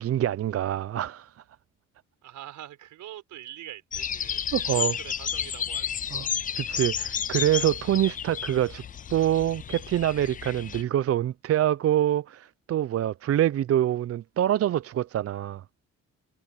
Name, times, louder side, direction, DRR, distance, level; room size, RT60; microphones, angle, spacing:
voice 1, 0.0-1.3 4.5-5.0 6.1-6.3 6.6-8.8 9.1-15.6, right 12 dB, 50° right, 0.5 m, -25 dB
voice 2, 2.2-6.1, right 12 dB, 80° right, 5.6 m, -44 dB
sound 1, 3.9-10.8, left 8 dB, 30° left, 0.3 m, -32 dB
cardioid pair, 90°, 30 cm